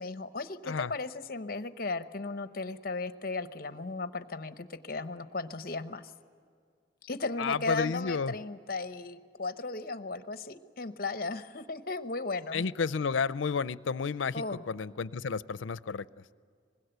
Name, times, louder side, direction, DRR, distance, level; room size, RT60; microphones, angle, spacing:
voice 1, 0.0-6.1 7.0-12.6 14.3-14.6, left 3 dB, 50° left, 11 dB, 0.9 m, -36 dB
voice 2, 7.4-8.3 12.5-16.1, left 5 dB, 90° left, 17 dB, 0.5 m, -31 dB
24.5 x 21.0 x 8.0 m, 2.1 s
head